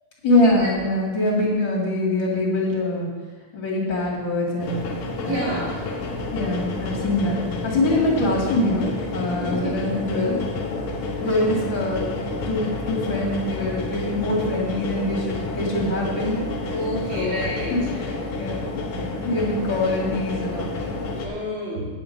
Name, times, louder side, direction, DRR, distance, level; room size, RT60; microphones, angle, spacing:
voice 1, 0.2-3.1 3.5-4.8 5.2-5.5 6.3-10.4 11.2-16.7 17.1-17.4 17.7-18.7 19.2-20.7, left 1 dB, 60° left, -3 dB, 3.0 m, -24 dB
sound 1, 4.6-21.3, left 2 dB, 80° left, 2.0 m, -30 dB
voice 2, 5.2-5.7 9.6-9.7 16.7-17.7 21.1-21.9, equal, 70° right, -7 dB, 4.1 m, -29 dB
9.6 x 7.2 x 5.3 m, 1.4 s
omnidirectional pair, 2.3 m